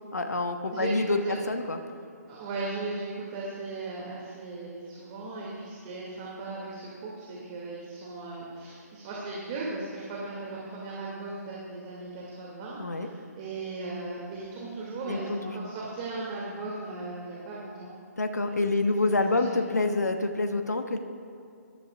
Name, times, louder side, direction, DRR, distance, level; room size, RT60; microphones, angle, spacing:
voice 1, 0.1-1.2 1.5-1.8 12.8-13.1 15.0-15.7 18.2-21.0, left 2 dB, 75° left, 6 dB, 1.3 m, -27 dB
voice 2, 2.3-19.0 19.4-19.7, right 3 dB, 30° right, -5 dB, 2.3 m, -37 dB
21.5 x 13.0 x 2.4 m, 2.4 s
figure-of-eight pair, 135°, 9 cm